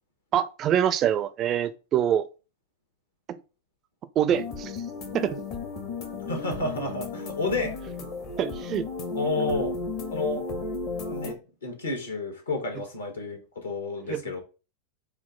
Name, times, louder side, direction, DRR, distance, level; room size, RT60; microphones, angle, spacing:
voice 1, 0.3-2.2 3.3-3.4 4.2-4.7 5.1-5.4 8.4-8.9 14.1-14.2, right 10 dB, 30° right, 0.4 m, -25 dB
sound 1, 4.3-11.3, left 3 dB, 40° left, 0.8 m, -34 dB
voice 2, 6.3-7.8 9.1-9.7 10.1-10.4 11.0-14.4, left 3 dB, 70° left, 1.3 m, -30 dB
4.4 x 2.0 x 3.7 m
figure-of-eight pair, 90°, 0 cm